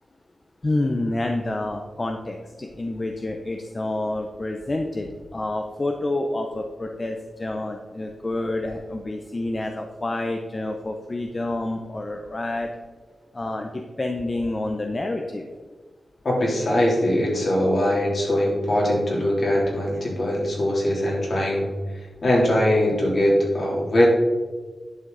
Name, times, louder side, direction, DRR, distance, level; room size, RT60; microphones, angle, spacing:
voice 1, 0.6-12.7 13.3-15.5, left 2 dB, 30° left, 3 dB, 0.7 m, -28 dB
voice 2, 16.2-21.7 21.9-24.1, left 1 dB, 55° left, -3 dB, 3.1 m, -21 dB
10.5 x 6.3 x 4.0 m, 1.4 s
wide cardioid pair, 130°, 0 cm